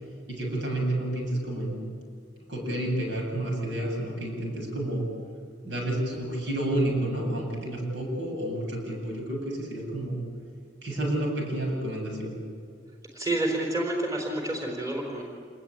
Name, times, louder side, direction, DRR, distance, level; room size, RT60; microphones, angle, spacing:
voice 1, 0.3-1.8 2.5-5.1 5.6-10.2 10.8-12.4, right 1 dB, 65° right, 0 dB, 7.9 m, -30 dB
voice 2, 13.1-15.2, right 1 dB, 20° right, 1 dB, 4.1 m, -29 dB
27.5 x 20.0 x 9.0 m, 2.2 s
head